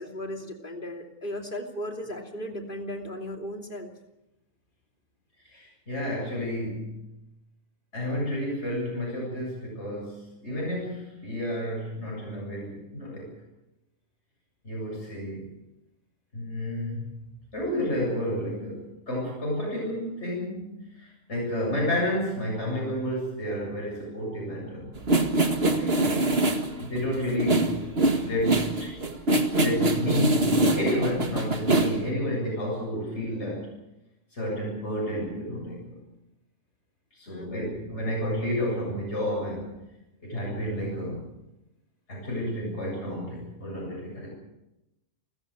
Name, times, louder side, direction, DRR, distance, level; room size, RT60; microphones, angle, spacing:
voice 1, 0.0-3.9 37.3-37.8, left 1 dB, 40° left, 3 dB, 3.0 m, -36 dB
voice 2, 5.4-7.1 7.9-13.3 14.6-15.5 16.3-17.1 17.5-24.9 25.8-26.3 26.8-27.8 28.2-29.0 29.5-33.7 34.3-36.0 37.1-39.7 40.2-41.2 42.1-44.3, left 1 dB, 60° left, -3 dB, 8.2 m, -31 dB
sound 1, 25.0-32.1, right 2 dB, 50° right, 2.2 m, -24 dB
29.0 x 14.5 x 8.1 m, 0.96 s
omnidirectional pair, 1.3 m